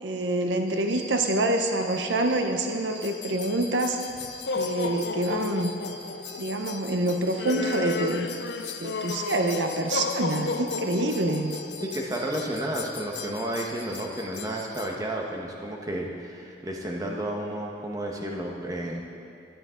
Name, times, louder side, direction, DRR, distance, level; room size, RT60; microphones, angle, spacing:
voice 1, 0.0-4.0 4.6-5.7 6.4-8.3 8.8-11.5, right 2 dB, 80° right, 5 dB, 0.8 m, -26 dB
sound 1, 0.7-14.7, right 1 dB, 40° right, 2.8 m, -46 dB
sound 2, 3.0-14.9, left 4 dB, 70° left, 0.5 m, -34 dB
voice 2, 11.8-19.1, right 1 dB, 20° right, -1 dB, 1.2 m, -32 dB
15.5 x 12.0 x 3.9 m, 2.5 s
head